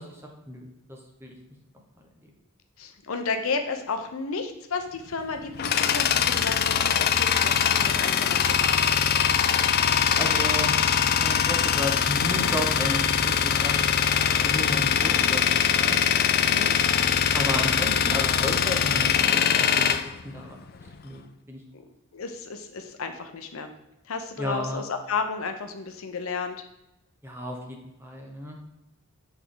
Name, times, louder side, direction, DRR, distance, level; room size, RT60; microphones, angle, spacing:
voice 1, 0.0-1.4 2.2-2.3 9.6-13.8 14.4-16.0 17.3-21.6 24.4-24.8 27.2-28.6, left 1 dB, 10° right, 0 dB, 1.0 m, -34 dB
voice 2, 2.8-8.8 16.4-16.7 21.7-21.8 22.1-23.7 24.0-26.6, left 4 dB, 75° left, 6 dB, 0.7 m, -32 dB
Tools, 5.1-20.9, left 8 dB, 45° left, 0.3 m, -22 dB
8.1 x 3.5 x 3.8 m, 0.93 s
head